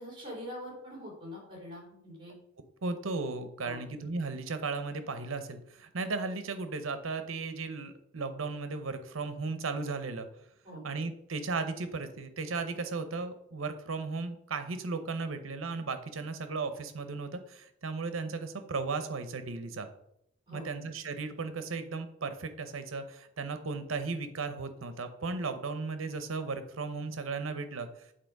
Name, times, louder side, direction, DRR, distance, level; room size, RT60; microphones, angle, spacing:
voice 1, 0.0-2.3 3.6-3.8 10.6-10.8 20.5-20.7, equal, 25° right, -2 dB, 3.1 m, -43 dB
voice 2, 2.8-10.3 10.8-19.9 20.5-27.9, right 4 dB, 90° right, 9 dB, 0.8 m, -35 dB
7.7 x 4.1 x 4.7 m, 0.75 s
head